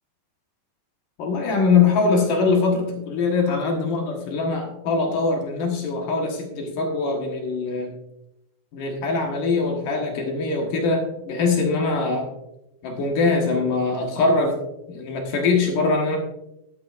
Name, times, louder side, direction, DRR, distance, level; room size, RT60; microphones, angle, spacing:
voice 1, 1.2-7.9 8.7-12.3 12.8-14.6 14.9-16.2, left 4 dB, 60° left, 1 dB, 2.4 m, -22 dB
13.0 x 11.5 x 2.6 m, 0.88 s
omnidirectional pair, 5.6 m